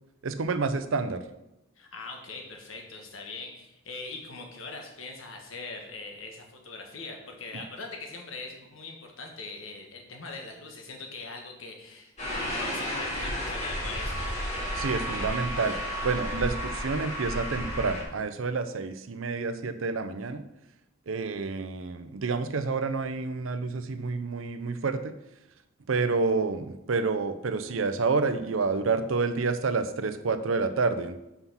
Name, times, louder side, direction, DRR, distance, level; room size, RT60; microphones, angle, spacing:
voice 1, 0.2-1.2 7.5-7.6 14.7-15.8 16.0-20.4 21.1-25.1 25.9-31.2, right 4 dB, 70° right, 10 dB, 0.6 m, -29 dB
voice 2, 1.8-14.5, left 3 dB, 70° left, 2 dB, 1.4 m, -42 dB
sound 1, 12.2-18.0, equal, 35° left, 2.7 m, -32 dB
5.8 x 5.7 x 5.7 m, 0.90 s
head